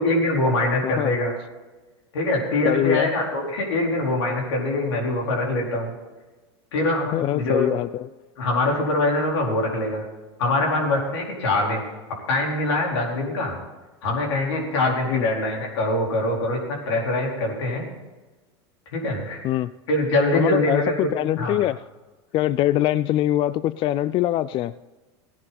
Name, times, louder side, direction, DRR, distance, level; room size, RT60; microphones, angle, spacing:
voice 1, 0.0-1.3 2.1-6.0 6.7-7.7 8.4-10.1 10.4-11.9 12.3-13.6 14.0-17.8 18.9-19.4 19.9-21.1 21.4-21.6, left 2 dB, 80° left, 0 dB, 4.5 m, -23 dB
voice 2, 0.8-1.2 2.7-3.1 7.1-8.1 15.1-15.3 19.4-19.7 20.3-21.8 22.3-24.7, left 13 dB, 40° left, 17 dB, 0.3 m, -23 dB
16.5 x 11.0 x 4.3 m, 1.2 s
hypercardioid pair, 105°, 14 cm